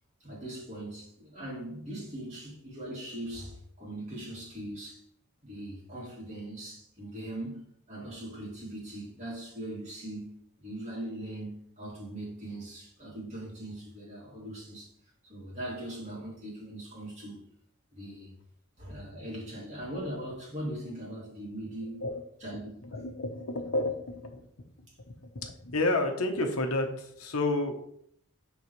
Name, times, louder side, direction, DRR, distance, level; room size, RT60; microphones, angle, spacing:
voice 1, 0.2-5.0 5.4-7.6 7.9-10.3 10.6-14.9 15.2-17.4 17.9-18.3 18.8-22.1 22.4-22.7, right 1 dB, 30° right, -5 dB, 2.7 m, -40 dB
voice 2, 22.9-24.4 25.2-27.8, left 2 dB, 75° left, 4 dB, 1.1 m, -30 dB
11.0 x 4.0 x 3.2 m, 0.69 s
head